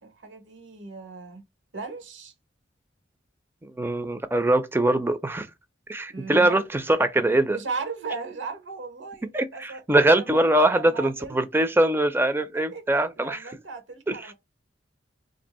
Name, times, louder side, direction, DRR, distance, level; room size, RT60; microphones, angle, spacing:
voice 1, 0.0-1.4 1.7-2.3 6.1-7.0 7.5-9.8 10.2-10.4 10.7-11.4 12.5-12.8 13.2-14.3, right 4 dB, 80° right, 0.9 m, -37 dB
voice 2, 3.6-5.5 5.9-7.6 9.3-13.4 14.1-14.2, right 1 dB, 10° right, 0.4 m, -22 dB
2.8 x 2.6 x 4.1 m
head